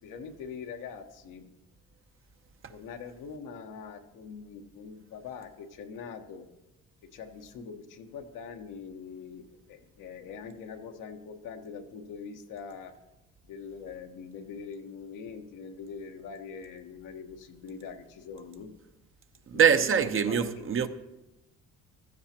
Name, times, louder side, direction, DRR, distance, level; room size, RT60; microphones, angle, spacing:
voice 1, 0.0-1.5 2.7-6.4 7.1-12.9 13.4-18.7 19.5-20.7, left 6 dB, 80° left, 1.2 m, -43 dB
voice 2, 19.5-20.9, right 7 dB, 40° right, 0.8 m, -23 dB
15.5 x 13.5 x 2.9 m
cardioid pair, 85°, 31 cm